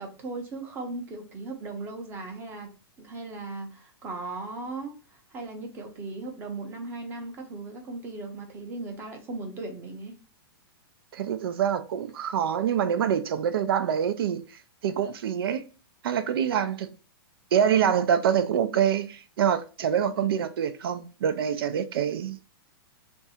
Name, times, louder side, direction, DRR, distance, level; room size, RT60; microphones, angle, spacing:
voice 1, 0.0-2.7 3.0-4.9 5.3-10.2, right 3 dB, 15° right, 0.7 m, -37 dB
voice 2, 11.1-14.4 14.8-15.6 16.0-16.9 17.5-22.4, right 8 dB, 65° right, 0.5 m, -25 dB
3.6 x 2.6 x 4.1 m
hypercardioid pair, 165°, 13 cm